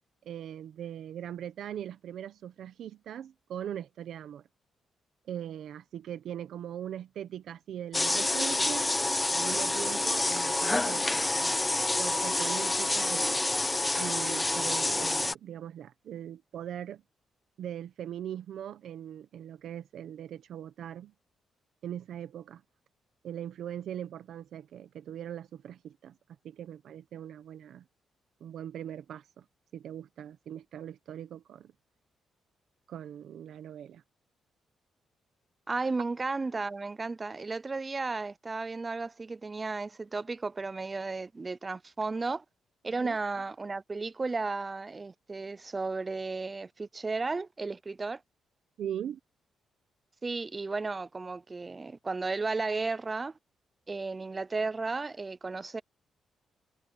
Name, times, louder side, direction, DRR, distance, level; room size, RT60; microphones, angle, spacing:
voice 1, 0.2-4.4 5.3-8.9 9.3-11.6 12.0-13.5 14.0-17.0 17.6-21.1 21.8-22.6 23.2-26.1 26.4-27.8 28.4-29.4 29.7-31.7 32.9-34.0 42.9-43.2 48.8-49.2, right 10 dB, 75° right, 1.0 m, -40 dB
sound 1, 7.9-15.3, left 2 dB, 20° left, 1.0 m, -28 dB
voice 2, 35.7-42.4 42.8-48.2 50.2-53.4 53.9-55.8, right 3 dB, 30° right, 0.6 m, -34 dB
cardioid pair, 80°, 0 cm